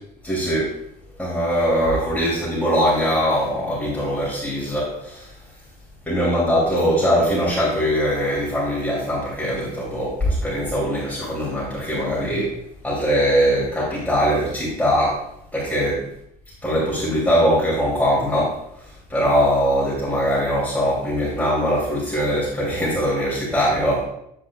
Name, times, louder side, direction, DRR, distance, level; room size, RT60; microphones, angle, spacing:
voice 1, 0.2-0.8 1.2-5.3 6.1-12.5 12.8-15.2 15.5-16.0 16.6-18.6 19.1-24.1, equal, 10° left, -8 dB, 3.0 m, -21 dB
8.9 x 7.4 x 2.4 m, 0.74 s
cardioid pair, 110°, 17 cm